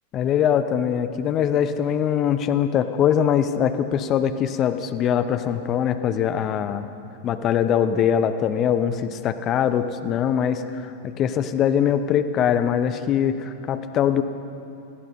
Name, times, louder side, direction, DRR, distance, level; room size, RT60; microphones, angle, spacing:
voice 1, 0.1-6.9 7.2-10.9 11.2-14.2, left 9 dB, 30° left, 10 dB, 0.7 m, -22 dB
20.0 x 14.5 x 4.3 m, 2.8 s
figure-of-eight pair, 90°, 0 cm